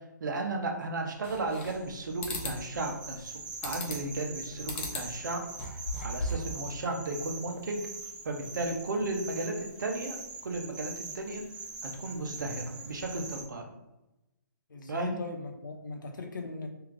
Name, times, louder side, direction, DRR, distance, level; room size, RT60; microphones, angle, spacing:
voice 1, 0.2-3.3 3.6-5.4 6.0-7.8 8.2-10.2 10.4-11.4 11.8-13.7 14.9-15.2, right 2 dB, 70° right, 2 dB, 1.0 m, -34 dB
sound 1, 1.2-1.9 2.2-2.6 3.6-4.1 4.7-5.1 5.5-6.5, left 1 dB, 35° left, 0.9 m, -36 dB
sound 2, 1.2-13.4, right 3 dB, 10° right, 0.5 m, -43 dB
voice 2, 14.7-16.7, left 3 dB, 75° left, 3 dB, 0.8 m, -38 dB
3.3 x 2.9 x 3.7 m, 0.96 s
hypercardioid pair, 150°, 11 cm